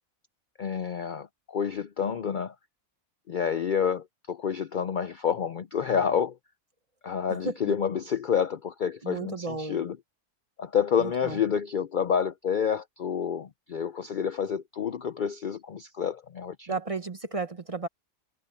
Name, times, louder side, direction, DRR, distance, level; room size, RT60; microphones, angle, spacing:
voice 1, 0.6-2.5 3.3-6.4 7.0-10.0 10.6-16.7, left 7 dB, 55° left, 0.5 m, -29 dB
voice 2, 7.3-7.7 9.0-9.8 11.0-11.4 16.7-17.9, right 3 dB, 30° right, 0.8 m, -33 dB
omnidirectional pair, 1.4 m